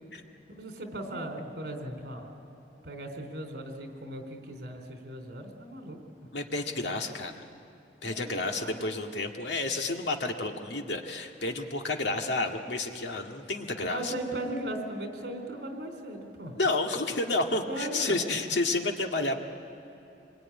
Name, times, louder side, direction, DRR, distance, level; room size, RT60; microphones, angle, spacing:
voice 1, 0.5-2.3 2.8-6.0 8.0-8.9 9.5-9.7 13.9-16.5 17.7-18.2, right 1 dB, 65° right, 3 dB, 3.7 m, -38 dB
voice 2, 6.3-7.4 8.0-14.1 16.5-19.5, left 2 dB, 85° left, 3 dB, 1.9 m, -30 dB
26.0 x 22.0 x 9.9 m, 2.9 s
head